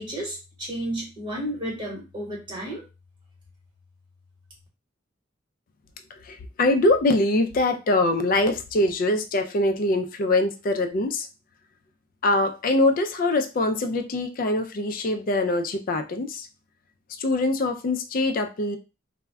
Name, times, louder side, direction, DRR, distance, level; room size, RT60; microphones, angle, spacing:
voice 1, 0.0-2.8, right 1 dB, 25° right, -3 dB, 1.1 m, -32 dB
voice 2, 6.1-11.3 12.2-16.5 17.2-18.8, left 2 dB, 45° left, 6 dB, 0.3 m, -23 dB
2.2 x 2.0 x 3.4 m, 0.29 s
head